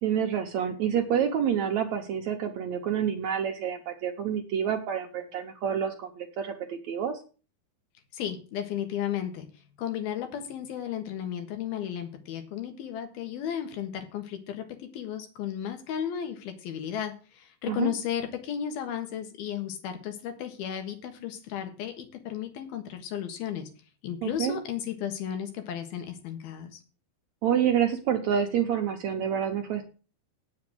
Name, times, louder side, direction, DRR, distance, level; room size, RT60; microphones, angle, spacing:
voice 1, 0.0-7.2 17.7-17.9 24.2-24.6 27.4-29.8, right 8 dB, 70° right, 4 dB, 1.8 m, -28 dB
voice 2, 8.1-9.5 9.8-23.7 24.0-26.8, left 9 dB, 85° left, 6 dB, 3.4 m, -34 dB
8.7 x 7.1 x 7.7 m, 0.36 s
omnidirectional pair, 4.3 m